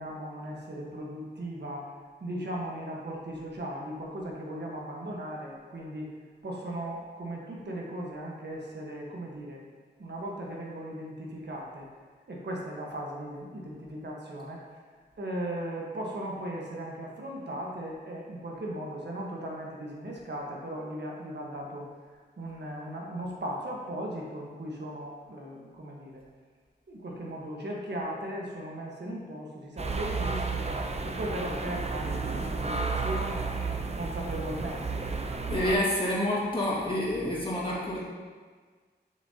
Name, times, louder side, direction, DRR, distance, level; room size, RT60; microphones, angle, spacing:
voice 1, 0.0-1.9 2.2-6.1 6.4-9.6 10.0-11.9 12.3-14.6 15.2-21.9 22.4-26.2 26.9-35.4, right 1 dB, 70° right, -2 dB, 1.3 m, -37 dB
sound 1, 29.8-35.7, right 4 dB, 35° right, 0.6 m, -32 dB
voice 2, 35.5-38.0, left 1 dB, 30° left, -6 dB, 2.0 m, -28 dB
7.3 x 6.6 x 2.8 m, 1.5 s
wide cardioid pair, 70°, 18 cm